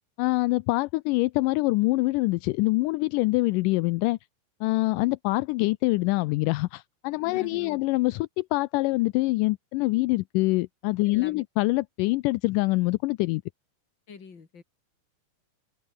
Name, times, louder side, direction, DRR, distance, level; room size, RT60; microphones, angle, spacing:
voice 1, 0.2-4.2 4.6-13.4, left 21 dB, 80° left, 1.9 m, -25 dB
voice 2, 7.2-7.8 11.0-11.4 14.1-14.6, left 5 dB, 35° left, 3.4 m, -44 dB
omnidirectional pair, 4.2 m